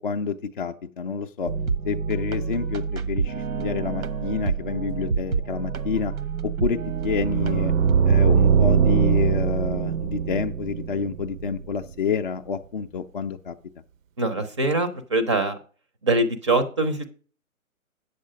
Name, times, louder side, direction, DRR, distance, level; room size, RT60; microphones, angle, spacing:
voice 1, 0.0-1.5 1.8-6.1 6.4-7.7 8.1-13.5, left 6 dB, 40° left, 4 dB, 0.4 m, -28 dB
sound 1, 1.5-8.2, right 5 dB, 85° right, 1.0 m, -28 dB
sound 2, 7.0-11.9, right 7 dB, 65° right, 0.6 m, -22 dB
voice 2, 14.2-15.6 16.0-17.1, right 2 dB, 20° right, 9 dB, 0.5 m, -23 dB
8.4 x 6.5 x 4.9 m, 0.41 s
hypercardioid pair, 140°, 43 cm